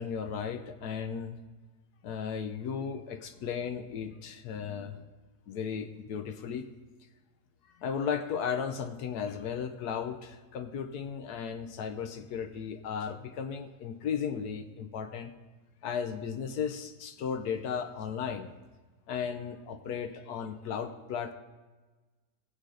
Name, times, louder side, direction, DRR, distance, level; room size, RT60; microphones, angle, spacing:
voice 1, 0.0-1.4 2.0-5.0 5.5-6.7 7.8-15.3 15.8-18.5 19.1-21.3, left 7 dB, 80° left, 8 dB, 1.3 m, -35 dB
20.0 x 7.4 x 3.8 m, 1.3 s
omnidirectional pair, 1.7 m